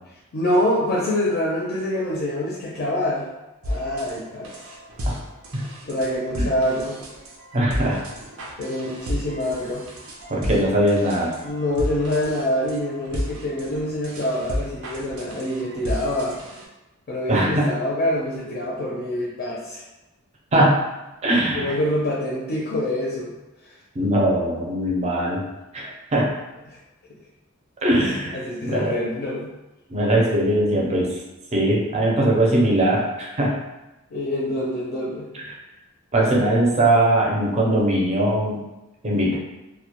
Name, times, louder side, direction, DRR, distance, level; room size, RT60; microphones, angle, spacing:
voice 1, 0.3-3.3 3.6-4.6 5.9-7.0 8.6-9.8 11.4-16.3 17.1-19.8 21.4-23.3 23.6-23.7 26.7-26.8 27.9-29.5 34.1-35.3, left 1 dB, 45° left, -5 dB, 0.4 m, -25 dB
sound 1, 3.6-16.6, equal, 90° right, 0.5 m, -32 dB
voice 2, 7.5-8.0 10.3-11.3 17.3-17.7 20.5-20.9 21.2-21.7 24.0-25.4 25.7-26.3 27.8-28.4 28.6-29.0 29.9-31.1 31.5-33.6 36.1-38.7 39.0-39.4, right 1 dB, 30° right, -2 dB, 0.5 m, -20 dB
2.1 x 2.1 x 2.9 m, 1.0 s
head